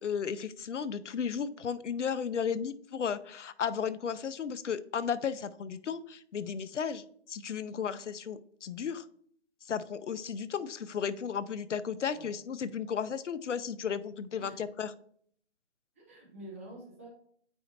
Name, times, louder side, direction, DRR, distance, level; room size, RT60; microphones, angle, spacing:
voice 1, 0.0-9.1 9.6-14.9, left 7 dB, 90° left, 14 dB, 0.6 m, -34 dB
voice 2, 16.0-17.1, right 1 dB, 10° right, -3 dB, 0.8 m, -47 dB
9.1 x 4.3 x 2.8 m, 0.62 s
hypercardioid pair, 165°, 35 cm